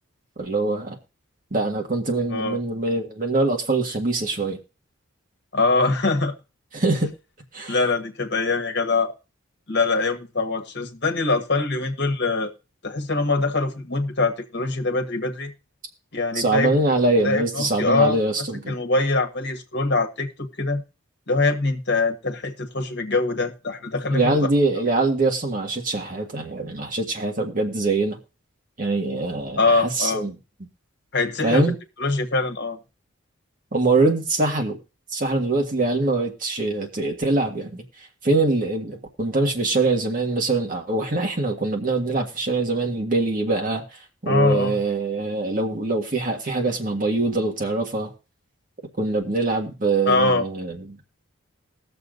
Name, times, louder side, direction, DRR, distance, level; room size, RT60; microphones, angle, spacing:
voice 1, 0.4-1.0 1.5-4.6 6.7-7.1 7.5-7.8 16.3-18.7 24.1-28.2 28.8-30.3 31.4-31.8 33.7-34.8 35.1-37.8 38.2-48.1 49.0-51.0, right 2 dB, 40° right, 1.6 m, -23 dB
voice 2, 5.5-6.3 7.7-9.1 9.7-12.5 12.8-15.5 16.1-16.8 17.2-18.2 18.7-20.3 20.6-20.8 21.3-24.5 29.6-30.2 31.1-31.7 32.0-32.8 44.3-44.8 50.0-50.4, left 3 dB, 55° left, 1.4 m, -23 dB
20.5 x 7.0 x 2.6 m
head